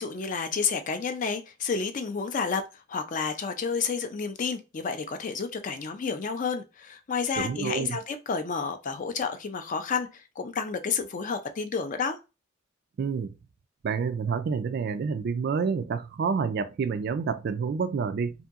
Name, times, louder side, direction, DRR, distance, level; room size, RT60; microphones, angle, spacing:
voice 1, 0.0-2.6 2.9-12.2, left 5 dB, 40° left, 0.4 m, -30 dB
voice 2, 7.4-8.0 13.0-13.3 13.8-18.3, right 5 dB, 50° right, 0.3 m, -28 dB
2.8 x 2.6 x 2.4 m
head